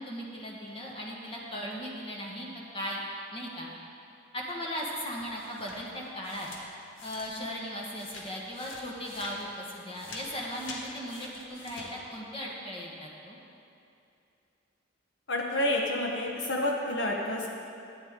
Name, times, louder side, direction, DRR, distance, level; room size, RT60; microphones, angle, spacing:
voice 1, 0.0-2.5 2.7-3.0 3.3-3.7 4.3-6.5 7.0-13.4, equal, 30° left, -3 dB, 1.5 m, -37 dB
sound 1, 4.9-7.6 7.9-11.9, left 2 dB, 80° left, 1.5 m, -46 dB
voice 2, 15.3-17.5, left 1 dB, 60° left, -1 dB, 1.1 m, -29 dB
13.5 x 9.2 x 3.7 m, 2.6 s
head